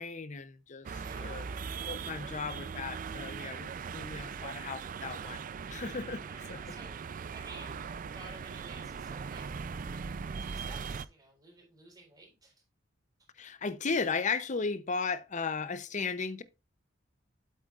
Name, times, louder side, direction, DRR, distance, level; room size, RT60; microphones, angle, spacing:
voice 1, 0.0-1.5 1.9-5.4 5.7-6.2 6.5-6.6 13.4-16.4, left 4 dB, 40° left, 0.6 m, -35 dB
sound 1, 0.8-11.0, right 6 dB, 45° right, 0.4 m, -40 dB
voice 2, 0.9-2.3 6.0-7.8 8.1-10.0 10.4-12.5, right 2 dB, 20° right, 4.0 m, -54 dB
8.3 x 7.9 x 2.4 m
head